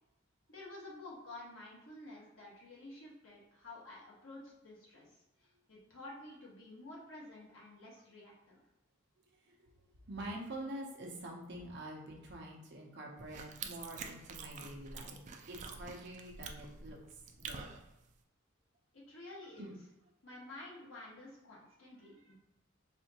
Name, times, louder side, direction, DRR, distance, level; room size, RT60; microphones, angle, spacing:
voice 1, 0.5-8.5 18.9-19.8 20.2-22.4, left 2 dB, 75° left, -4 dB, 1.3 m, -51 dB
voice 2, 9.8-15.2 15.5-17.0 17.4-17.9 19.6-19.7, right 1 dB, 55° right, -1 dB, 0.8 m, -46 dB
sound 1, 13.2-18.2, right 5 dB, 35° right, 0.3 m, -47 dB
4.2 x 2.6 x 2.9 m, 0.92 s
head